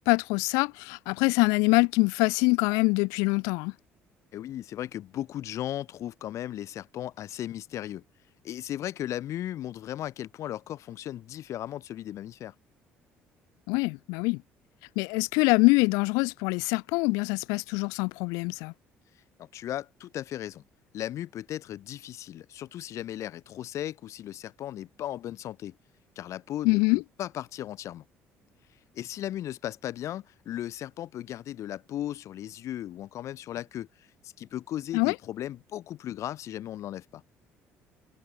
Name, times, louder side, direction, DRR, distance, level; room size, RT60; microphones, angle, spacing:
voice 1, 0.1-3.7 13.7-14.4 15.0-18.7 26.6-27.0 34.9-35.1, left 28 dB, 85° left, 0.9 m, -24 dB
voice 2, 4.3-8.0 8.4-12.5 19.4-20.6 20.9-25.7 26.1-28.0 28.9-33.9 34.4-37.2, left 12 dB, 65° left, 1.4 m, -36 dB
supercardioid pair, 70°, 6 cm